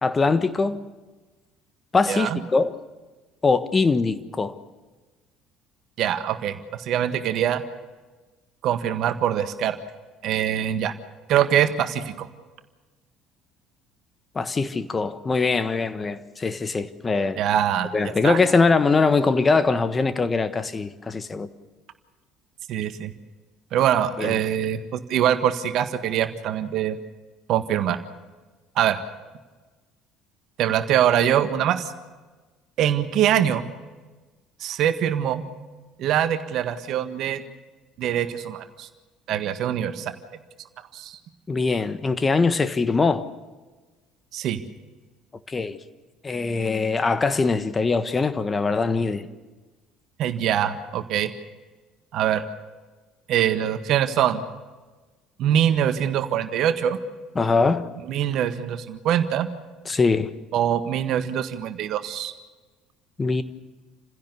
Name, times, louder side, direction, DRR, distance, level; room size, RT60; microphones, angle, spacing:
voice 1, 0.0-0.8 1.9-2.8 3.4-4.6 14.3-17.4 17.9-21.5 24.2-24.4 41.5-43.2 45.5-45.8 46.2-49.3 57.3-57.9 59.8-60.3 63.2-63.4, left 4 dB, 25° left, 1.4 m, -22 dB
voice 2, 2.1-2.4 6.0-6.5 6.8-7.6 8.6-9.8 10.2-10.9 11.3-12.3 17.4-17.9 18.2-18.4 22.7-23.1 23.7-27.0 27.5-28.0 28.8-29.0 30.6-31.9 32.8-33.7 34.6-35.4 36.0-37.4 38.0-38.9 39.3-40.1 40.9-41.2 44.3-44.6 50.2-51.3 52.1-52.4 53.3-54.4 55.4-57.0 58.1-59.5 60.5-62.3, right 10 dB, 60° right, 1.6 m, -23 dB
28.5 x 16.0 x 6.9 m
hypercardioid pair, 60°, 0 cm